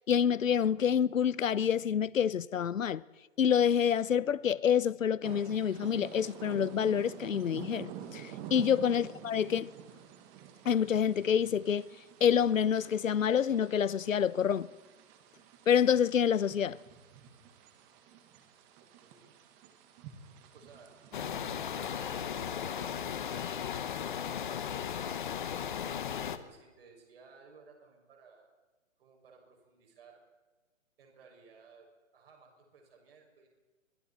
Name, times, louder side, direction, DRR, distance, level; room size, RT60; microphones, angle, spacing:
voice 1, 0.0-3.0 3.4-9.7 10.6-11.9 12.2-14.7 15.7-16.8, left 8 dB, 70° left, 1.0 m, -27 dB
sound 1, 5.2-23.7, right 9 dB, 15° right, 1.5 m, -49 dB
voice 2, 18.8-19.3 20.5-21.0 21.7-25.0 25.6-28.5 29.0-30.2 31.0-33.5, right 4 dB, 45° right, 6.3 m, -58 dB
sound 2, 21.1-26.4, left 8 dB, 35° left, 1.3 m, -36 dB
29.0 x 23.5 x 4.3 m
hypercardioid pair, 165°, 40 cm